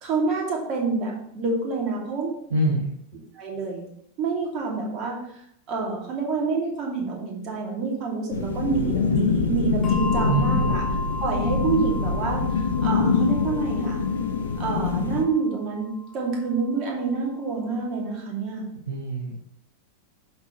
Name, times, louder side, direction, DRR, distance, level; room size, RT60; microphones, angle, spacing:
voice 1, 0.0-2.5 3.4-3.8 4.2-5.4 5.7-10.8 11.2-12.4 12.8-14.0 14.6-18.7, right 4 dB, 35° right, -1 dB, 2.4 m, -27 dB
voice 2, 2.5-2.9 10.3-10.7 18.9-19.4, right 2 dB, 60° right, 0 dB, 1.1 m, -25 dB
sound 1, 8.3-15.2, left 5 dB, 65° left, 0.8 m, -24 dB
Bell, 9.8-16.7, left 2 dB, 25° left, 1.3 m, -36 dB
11.5 x 4.5 x 3.1 m, 0.71 s
figure-of-eight pair, 90°, 0 cm